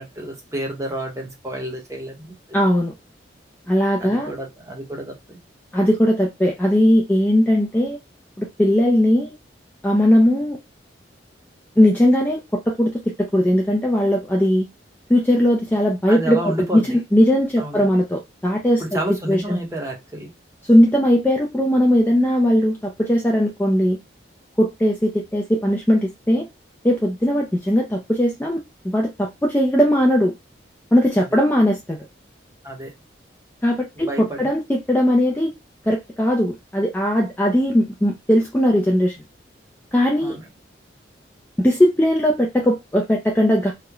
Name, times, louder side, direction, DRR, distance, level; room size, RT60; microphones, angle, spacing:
voice 1, 0.0-2.6 3.8-5.4 16.1-17.0 17.6-17.9 18.8-20.3 31.2-31.4 32.6-32.9 33.9-34.5 40.2-40.4, right 1 dB, 15° right, 0.8 m, -30 dB
voice 2, 2.5-2.9 3.7-4.3 5.7-8.0 8.4-9.3 9.8-10.6 11.8-14.7 15.1-16.8 17.1-18.8 19.3-19.6 20.6-24.0 24.6-26.5 26.8-30.3 30.9-32.0 33.6-34.1 34.4-35.5 35.9-39.1 39.9-40.4 41.6-43.7, equal, 10° left, 0.3 m, -18 dB
3.0 x 2.1 x 2.3 m
head